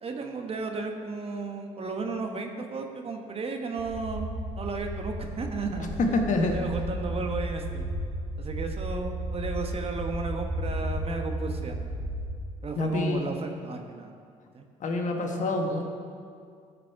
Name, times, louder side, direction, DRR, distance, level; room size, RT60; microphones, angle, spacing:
voice 1, 0.0-4.3 4.6-5.9 6.5-7.9 8.4-11.8 12.6-14.1 14.5-14.7, right 3 dB, 35° right, 4 dB, 1.2 m, -34 dB
sound 1, 3.8-12.4, right 1 dB, 75° right, 1.3 m, -34 dB
voice 2, 6.0-6.6 12.8-13.3 14.8-15.8, left 2 dB, 50° left, 3 dB, 1.3 m, -26 dB
13.5 x 5.3 x 4.7 m, 2.2 s
hypercardioid pair, 55°, 16 cm